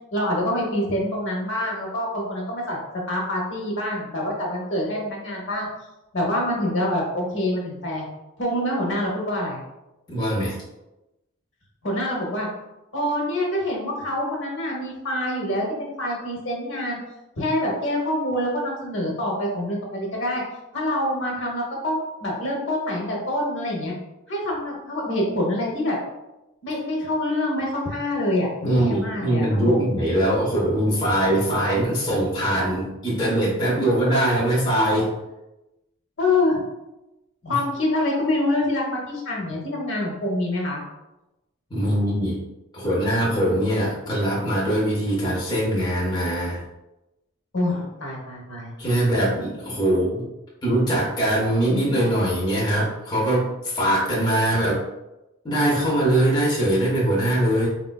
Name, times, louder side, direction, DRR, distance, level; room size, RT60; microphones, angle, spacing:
voice 1, 0.1-2.8 3.1-5.7 6.1-8.1 8.4-9.6 11.8-12.5 12.9-17.0 17.4-20.4 20.7-23.9 24.3-26.0 26.6-29.9 36.2-36.6 37.5-40.8 47.5-48.7, left 1 dB, 55° left, -2 dB, 0.8 m, -26 dB
voice 2, 10.1-10.6 28.6-35.1 37.4-37.6 41.7-42.4 42.7-46.6 48.8-50.3 50.6-54.8 55.4-57.7, right 1 dB, 20° left, -6 dB, 0.6 m, -22 dB
4.2 x 2.2 x 2.2 m, 0.97 s
head